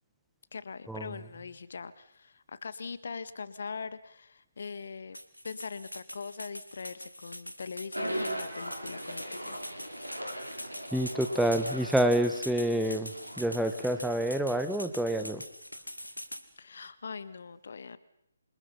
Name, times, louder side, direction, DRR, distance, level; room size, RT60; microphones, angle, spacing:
voice 1, 0.5-5.2 5.4-9.6 16.6-18.0, left 5 dB, 55° left, 15 dB, 1.6 m, -41 dB
sound 1, 5.1-16.4, equal, 90° left, 2.7 m, -44 dB
sound 2, 7.9-15.2, right 1 dB, 90° right, 6.6 m, -40 dB
voice 2, 10.9-15.4, right 1 dB, ahead, 7 dB, 1.6 m, -28 dB
28.0 x 27.0 x 5.7 m, 0.77 s
figure-of-eight pair, 140°, 0 cm